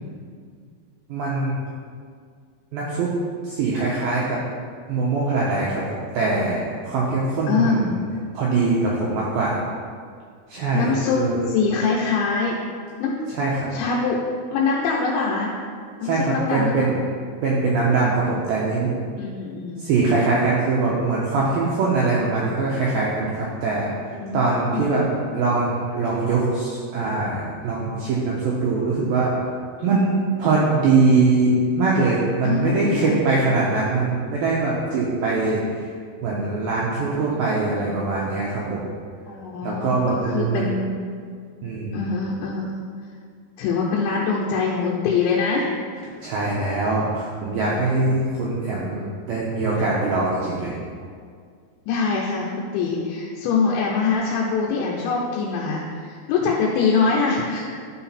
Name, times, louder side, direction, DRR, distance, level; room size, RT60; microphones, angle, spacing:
voice 1, 1.1-1.6 2.7-3.1 3.4-4.4 4.9-8.0 8.3-9.6 10.5-11.4 13.3-13.7 16.0-17.0 17.4-19.0 19.8-25.1 25.3-29.3 29.8-35.9 36.2-38.9 39.6-40.6 41.6-42.1 46.2-50.8, right 3 dB, 90° right, -5 dB, 2.1 m, -22 dB
voice 2, 7.5-8.0 10.7-11.2 11.5-12.6 13.0-13.2 13.7-14.2 14.5-15.5 16.0-16.9 19.2-19.9 24.2-25.0 29.8-29.9 32.4-33.2 37.3-37.4 37.8-37.9 39.3-41.2 41.9-42.7 43.6-45.7 51.9-57.8, left 4 dB, 85° left, -3 dB, 3.0 m, -24 dB
11.5 x 4.0 x 4.3 m, 2.1 s
omnidirectional pair, 5.3 m